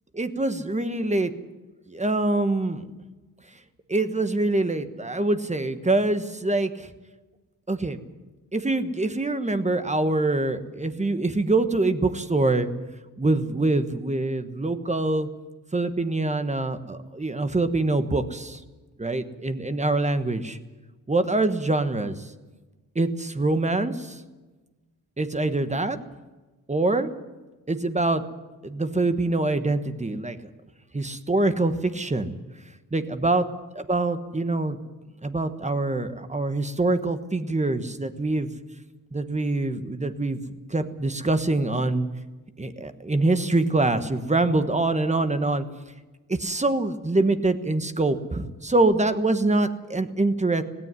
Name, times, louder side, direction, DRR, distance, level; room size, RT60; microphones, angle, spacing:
voice 1, 0.1-1.3 1.9-2.8 3.9-6.9 7.7-8.0 8.5-12.7 13.2-15.3 15.7-18.6 19.0-20.6 21.1-22.3 22.9-24.2 25.2-26.0 26.7-27.1 27.7-28.2 28.6-30.4 30.9-32.4 32.9-33.4 33.7-34.8 35.2-38.5 39.1-40.4 40.7-42.1 42.6-45.6 46.3-50.6, right 2 dB, 20° right, 9 dB, 1.4 m, -24 dB
17.5 x 17.0 x 9.8 m, 1.2 s
cardioid pair, 100°, 35 cm